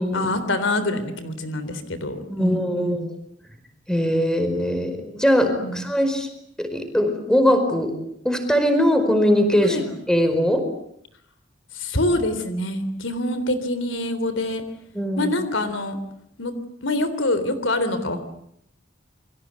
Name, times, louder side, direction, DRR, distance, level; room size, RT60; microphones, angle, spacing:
voice 1, 0.1-3.0 5.4-5.8 9.6-9.9 11.7-14.6 15.2-16.0 16.4-16.5 16.8-18.2, left 1 dB, 85° left, 11 dB, 3.6 m, -25 dB
voice 2, 2.3-3.1 3.9-6.3 6.6-7.9 8.2-9.8 10.1-10.7 14.9-15.3, equal, 5° left, 7 dB, 5.0 m, -21 dB
29.0 x 23.5 x 8.3 m, 0.72 s
head